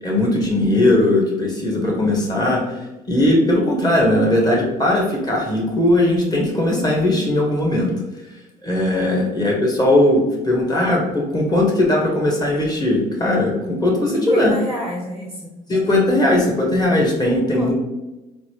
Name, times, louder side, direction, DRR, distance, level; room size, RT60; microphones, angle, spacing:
voice 1, 0.0-2.8 3.1-7.9 8.6-14.5 15.7-17.7, left 1 dB, 20° left, -1 dB, 1.3 m, -18 dB
voice 2, 14.0-15.6 17.5-17.7, equal, 5° right, -2 dB, 0.9 m, -29 dB
3.9 x 2.2 x 3.1 m, 1.0 s
hypercardioid pair, 65°, 21 cm